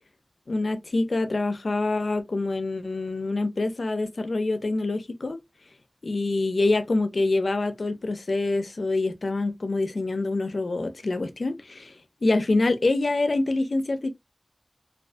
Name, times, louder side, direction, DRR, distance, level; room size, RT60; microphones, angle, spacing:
voice 1, 0.5-5.4 6.0-11.9 12.2-14.1, left 2 dB, 80° left, 0.4 m, -26 dB
2.3 x 2.3 x 2.4 m
wide cardioid pair, 50°, 0 cm